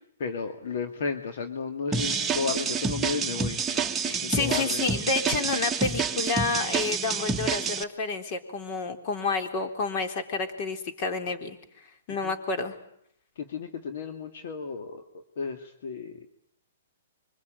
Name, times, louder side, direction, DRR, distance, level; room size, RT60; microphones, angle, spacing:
voice 1, 0.2-4.9 12.2-12.3 13.4-16.3, left 5 dB, 60° left, 5 dB, 2.3 m, -34 dB
sound 1, 1.9-7.8, right 5 dB, 10° right, 1.4 m, -28 dB
voice 2, 4.0-11.6 12.1-12.7, left 4 dB, 40° left, 6 dB, 3.9 m, -29 dB
26.5 x 24.5 x 9.1 m, 0.71 s
hypercardioid pair, 140°, 0 cm